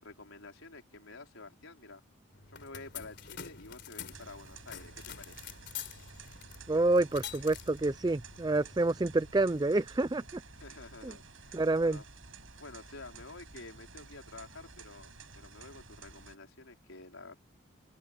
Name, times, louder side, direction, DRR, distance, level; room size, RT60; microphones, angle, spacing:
voice 1, 0.0-2.0 2.5-5.4 10.6-12.0 12.6-17.4, left 3 dB, 80° left, 4.9 m, -50 dB
sound 1, 2.3-9.7, left 9 dB, 55° left, 3.9 m, -47 dB
sound 2, 4.1-16.4, right 4 dB, 70° right, 7.4 m, -52 dB
voice 2, 6.7-10.4 11.0-11.1 11.5-12.0, right 2 dB, 20° right, 0.4 m, -28 dB
open air
head